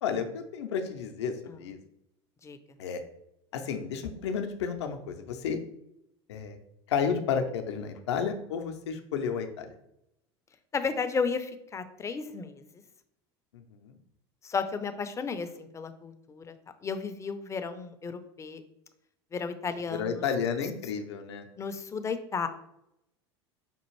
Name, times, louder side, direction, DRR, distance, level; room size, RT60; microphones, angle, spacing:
voice 1, 0.0-1.8 2.8-3.0 3.5-5.6 6.3-6.6 6.9-9.7 13.5-14.0 19.9-21.4, left 6 dB, 75° left, 6 dB, 0.5 m, -32 dB
voice 2, 10.7-12.6 14.4-16.6 16.8-18.6 19.3-20.2 21.6-22.5, left 5 dB, 20° left, 10 dB, 0.4 m, -33 dB
5.2 x 2.4 x 3.1 m, 0.82 s
hypercardioid pair, 80°, 14 cm